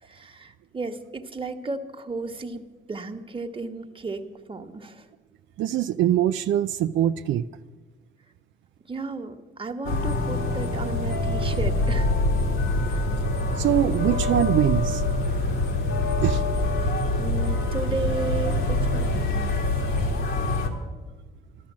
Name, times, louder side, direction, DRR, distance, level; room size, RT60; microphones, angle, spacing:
voice 1, 0.0-4.2 4.5-5.1 8.8-12.1 12.9-13.1 16.8-19.6, right 3 dB, 25° right, 6 dB, 1.4 m, -34 dB
voice 2, 5.6-7.4 13.6-15.0 16.2-16.4, right 11 dB, 75° right, 9 dB, 0.5 m, -23 dB
sound 1, 9.9-20.7, left 2 dB, 80° left, 2.3 m, -25 dB
13.0 x 13.0 x 7.4 m, 1.3 s
cardioid pair, 90°, 20 cm